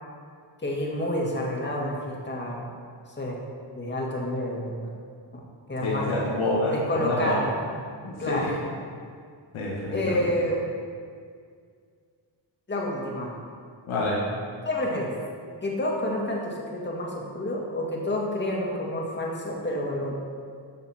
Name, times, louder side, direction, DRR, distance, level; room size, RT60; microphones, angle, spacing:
voice 1, 0.6-2.7 3.2-3.4 3.7-4.9 5.3-5.4 5.7-6.1 6.7-7.5 8.2-8.6 9.9-10.6 12.7-13.3 14.6-15.1 15.6-20.1, left 1 dB, 25° left, -2 dB, 2.0 m, -29 dB
voice 2, 5.8-7.4 8.0-8.1 8.4-8.5 9.5-10.2 13.9-14.2, left 1 dB, 85° left, -4 dB, 1.9 m, -27 dB
13.5 x 6.6 x 4.5 m, 2.1 s
wide cardioid pair, 125°, 47 cm